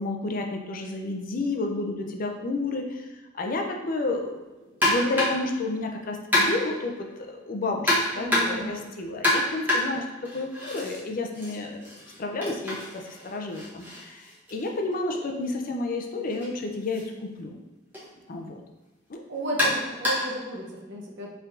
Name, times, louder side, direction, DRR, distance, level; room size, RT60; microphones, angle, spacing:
voice 1, 0.0-3.1 3.3-4.3 4.8-10.0 10.3-11.9 12.2-17.6 18.3-18.6 19.1-19.2, left 2 dB, 45° left, 4 dB, 0.5 m, -31 dB
sound 1, 4.8-5.5 6.3-6.8 7.9-8.7 9.2-11.0 11.3-15.2 16.3-16.5 16.9-17.0 17.9-18.1 19.6-20.4, left 1 dB, 10° right, 1.2 m, -27 dB
voice 2, 8.2-8.8 19.3-21.3, right 1 dB, 65° right, -1 dB, 0.8 m, -33 dB
4.5 x 3.3 x 2.5 m, 1.2 s
head